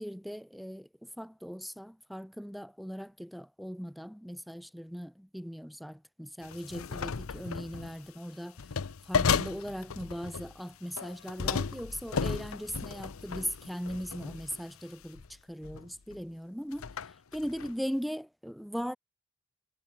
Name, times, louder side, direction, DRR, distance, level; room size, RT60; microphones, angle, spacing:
voice 1, 0.0-8.6 9.1-16.9 17.3-19.0, equal, ahead, 1.2 m, -39 dB
sound 1, 6.4-8.0 8.6-10.6 11.0-14.6 15.1-15.3 15.6-16.2 16.7-17.7, left 6 dB, 75° left, 0.7 m, -34 dB
head